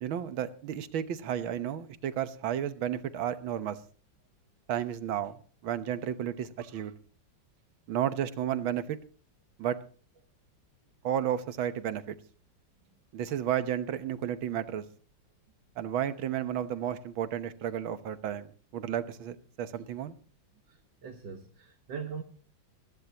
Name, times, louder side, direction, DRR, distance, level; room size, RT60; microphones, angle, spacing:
voice 1, 0.0-3.8 4.7-5.4 5.6-6.9 7.9-9.0 9.6-9.8 11.0-12.2 13.1-14.8 15.8-18.5 18.7-20.2, right 10 dB, 85° right, 12 dB, 1.9 m, -32 dB
voice 2, 20.7-22.2, right 6 dB, 65° right, 4 dB, 2.0 m, -41 dB
21.5 x 15.0 x 2.9 m, 0.41 s
omnidirectional pair, 2.1 m